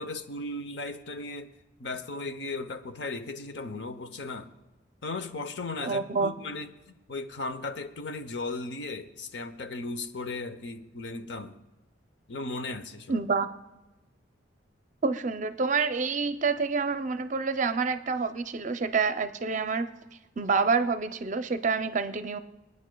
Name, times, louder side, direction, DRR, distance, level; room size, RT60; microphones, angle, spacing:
voice 1, 0.0-1.5 1.8-4.5 5.0-11.6 12.3-13.2, left 3 dB, 65° left, 9 dB, 0.8 m, -36 dB
voice 2, 5.8-6.3 13.1-13.5 15.0-19.9 20.4-22.4, right 4 dB, 40° right, 10 dB, 0.5 m, -27 dB
24.5 x 9.5 x 2.3 m, 1.0 s
head